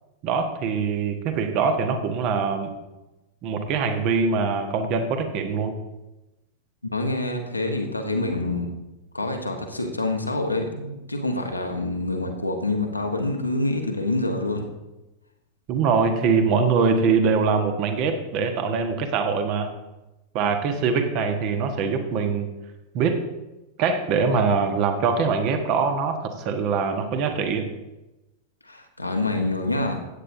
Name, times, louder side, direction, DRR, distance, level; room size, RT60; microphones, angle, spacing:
voice 1, 0.2-2.7 3.4-5.7 15.7-19.7 20.3-22.5 22.9-23.2 23.8-27.7, right 5 dB, 40° right, 7 dB, 1.3 m, -23 dB
voice 2, 6.9-8.7 9.1-14.7 28.7-30.0, left 2 dB, 85° left, 3 dB, 1.2 m, -26 dB
15.0 x 8.8 x 2.7 m, 1.0 s
figure-of-eight pair, 90°, 0 cm